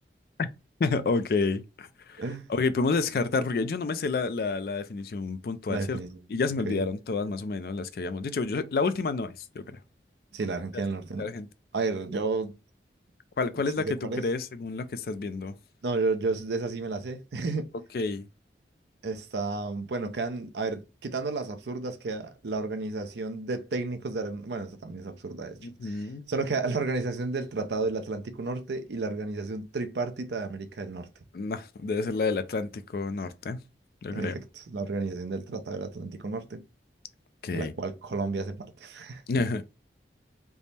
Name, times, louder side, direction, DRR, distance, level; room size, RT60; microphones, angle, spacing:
voice 1, 0.8-2.2 2.5-6.0 6.3-9.8 11.2-11.5 13.4-15.6 17.9-18.3 25.6-26.2 31.3-33.6 34.0-34.3 37.4-37.7 39.3-39.6, left 4 dB, 55° left, 0.3 m, -29 dB
voice 2, 2.2-2.5 5.7-6.2 6.7-6.8 10.3-11.3 11.7-12.5 13.8-14.3 15.8-17.7 19.0-31.1 34.1-36.6 37.5-39.2, right 3 dB, 75° right, 0.5 m, -32 dB
3.4 x 2.0 x 4.0 m
head